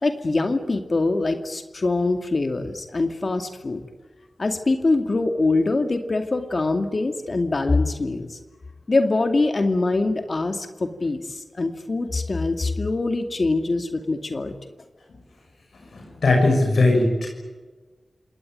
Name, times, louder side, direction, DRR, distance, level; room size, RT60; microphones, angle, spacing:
voice 1, 0.0-3.8 4.4-8.4 8.9-14.5, left 3 dB, 55° left, 6 dB, 2.4 m, -23 dB
voice 2, 15.9-17.3, left 2 dB, 80° left, 1 dB, 6.2 m, -19 dB
27.5 x 19.0 x 9.2 m, 1.3 s
cardioid pair, 40°, 0 cm